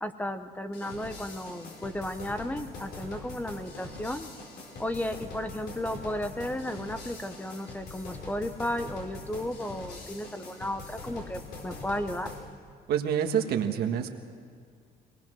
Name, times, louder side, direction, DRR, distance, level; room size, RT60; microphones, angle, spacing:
voice 1, 0.0-4.3 4.8-12.3, left 1 dB, 10° left, 9 dB, 0.9 m, -34 dB
sound 1, 0.7-12.4, left 3 dB, 75° left, 4.7 m, -43 dB
voice 2, 12.9-14.1, right 8 dB, 70° right, 5 dB, 1.6 m, -27 dB
22.5 x 19.5 x 6.3 m, 2.2 s
cardioid pair, 110°, 17 cm